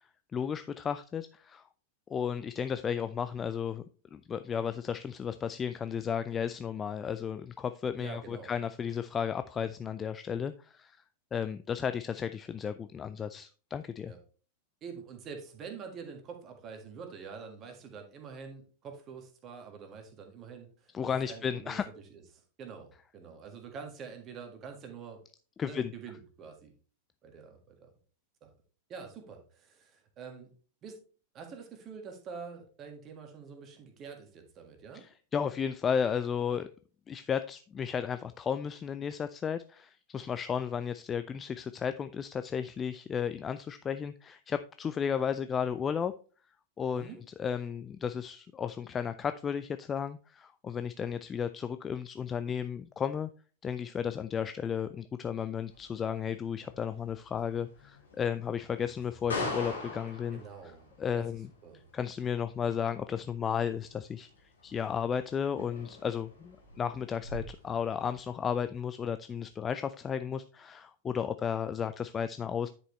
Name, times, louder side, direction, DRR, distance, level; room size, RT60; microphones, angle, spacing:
voice 1, 0.3-1.6 2.1-3.8 4.1-11.0 11.3-14.1 20.9-21.9 25.6-25.9 34.9-36.7 37.1-46.1 46.8-53.3 53.6-60.4 61.0-61.5 61.9-64.3 64.6-72.7, left 7 dB, 20° left, 11 dB, 0.3 m, -34 dB
voice 2, 8.0-8.5 14.0-14.2 14.8-21.8 22.1-22.2 22.6-25.2 25.6-26.7 27.2-27.9 28.4-28.5 28.9-30.5 30.8-31.0 31.3-35.1 46.9-47.2 60.3-61.3 61.6-61.8, right 5 dB, 30° right, 4 dB, 1.7 m, -46 dB
sound 1, 55.7-68.5, left 3 dB, 70° left, 2.3 m, -44 dB
9.8 x 5.4 x 3.1 m, 0.38 s
figure-of-eight pair, 90°, 0 cm